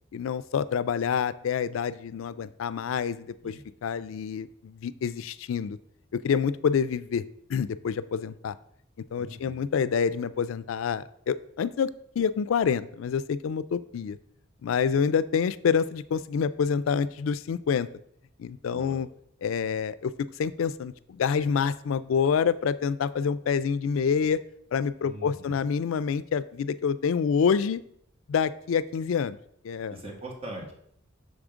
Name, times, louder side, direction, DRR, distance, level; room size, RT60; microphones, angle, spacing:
voice 1, 0.1-3.5 3.8-5.8 6.1-7.2 7.5-8.5 9.1-11.9 12.2-14.2 14.6-17.9 18.4-19.1 19.4-20.1 20.4-24.4 24.7-27.8 28.3-29.4 29.6-30.0, left 6 dB, 75° left, 16 dB, 0.3 m, -27 dB
voice 2, 9.2-9.6 18.7-19.0 25.0-25.6 29.9-30.7, right 1 dB, 30° right, -1 dB, 1.6 m, -41 dB
6.5 x 3.6 x 5.0 m, 0.69 s
head